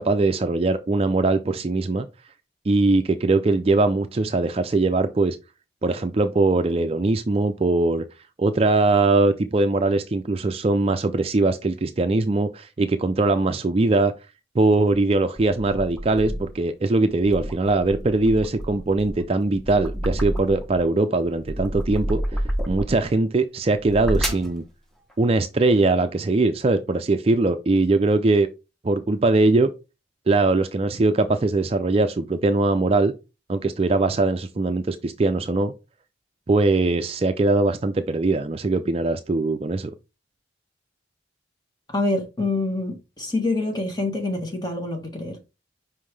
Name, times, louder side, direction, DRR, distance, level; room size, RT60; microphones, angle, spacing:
voice 1, 0.0-2.1 2.7-5.4 5.8-8.0 8.4-14.1 14.5-22.2 22.7-24.6 25.2-28.5 28.8-29.7 30.3-33.1 33.5-35.7 36.5-39.9, right 2 dB, 30° right, 0.4 m, -21 dB
sound 1, 14.7-16.6 17.1-20.8 21.2-23.1 23.7-24.5, equal, ahead, 1.0 m, -30 dB
voice 2, 41.9-45.4, left 2 dB, 20° left, 1.6 m, -26 dB
5.6 x 5.1 x 3.3 m
head